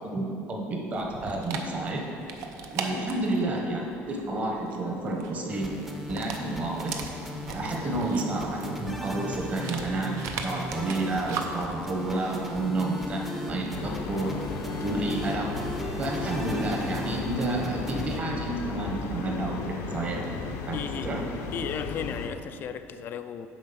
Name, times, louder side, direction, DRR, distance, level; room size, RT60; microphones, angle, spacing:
voice 1, 0.0-2.0 2.7-5.7 6.0-6.9 7.5-14.3 14.7-15.5 16.0-19.6 19.9-20.3 20.7-20.8 21.0-21.2, right 2 dB, 30° right, 0 dB, 1.1 m, -30 dB
Dog, 0.9-13.8, right 5 dB, 70° right, 0.7 m, -40 dB
sound 1, 5.5-18.2, left 1 dB, 5° right, 0.6 m, -37 dB
sound 2, 13.7-22.3, left 4 dB, 70° left, 0.7 m, -35 dB
voice 2, 20.7-21.2 21.5-23.5, left 8 dB, 45° left, 10 dB, 0.3 m, -35 dB
7.4 x 4.6 x 5.7 m, 2.7 s
cardioid pair, 150°, 5 cm